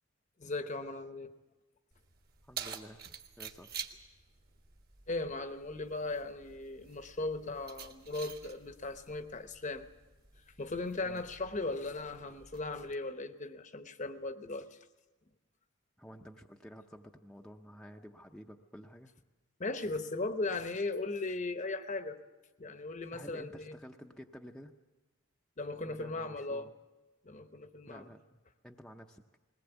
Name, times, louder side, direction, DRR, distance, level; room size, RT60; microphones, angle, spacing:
voice 1, 0.4-1.3 5.1-9.9 10.6-14.8 19.6-22.2 22.6-23.8 25.6-26.7 27.2-28.1, left 2 dB, 35° left, 9 dB, 0.9 m, -37 dB
Keys jangling, 1.9-12.9, right 7 dB, 45° right, 1.4 m, -49 dB
voice 2, 2.4-3.1 3.4-3.8 11.0-11.2 16.0-19.2 23.1-24.7 25.8-26.7 27.9-29.2, equal, 5° left, 2 dB, 0.6 m, -51 dB
21.0 x 18.5 x 8.1 m, 1.2 s
head